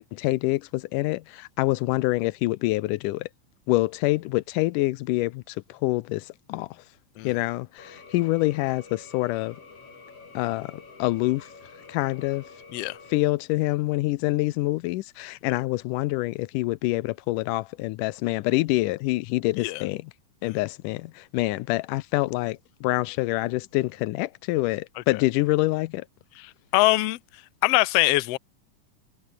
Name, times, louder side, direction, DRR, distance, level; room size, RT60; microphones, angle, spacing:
voice 1, 0.0-3.3 3.7-6.7 7.2-9.6 10.3-11.5 11.9-12.4 13.1-20.0 20.4-26.1, left 20 dB, 90° left, 2.2 m, -26 dB
sound 1, 7.8-13.1, left 4 dB, 50° left, 5.5 m, -48 dB
voice 2, 26.4-27.2 27.6-28.4, left 20 dB, 75° left, 1.5 m, -23 dB
omnidirectional pair, 3.7 m